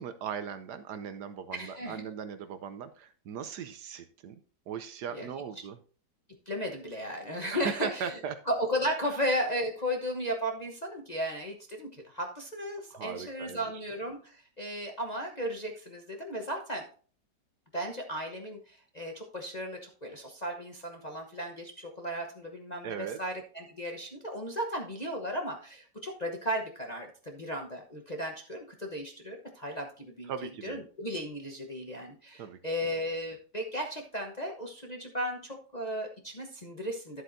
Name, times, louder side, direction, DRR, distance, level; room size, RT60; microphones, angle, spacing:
voice 1, 0.0-4.4 4.7-5.8 7.5-8.4 9.1-9.2 12.9-13.6 22.8-23.2 30.3-30.8 32.4-32.6, right 7 dB, 70° right, 11 dB, 1.1 m, -38 dB
voice 2, 1.5-2.0 5.1-5.3 6.5-8.1 8.5-16.9 17.7-30.3 30.6-37.2, equal, 30° left, 2 dB, 0.8 m, -35 dB
11.0 x 7.8 x 2.6 m, 0.40 s
omnidirectional pair, 2.1 m